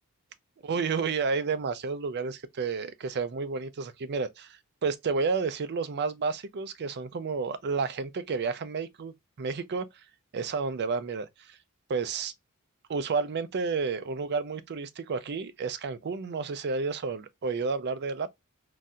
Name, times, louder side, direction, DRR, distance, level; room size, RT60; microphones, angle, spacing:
voice 1, 0.6-9.9 10.3-11.6 11.9-12.3 12.9-18.3, right 4 dB, 50° right, 0.5 m, -31 dB
3.9 x 2.7 x 2.3 m
head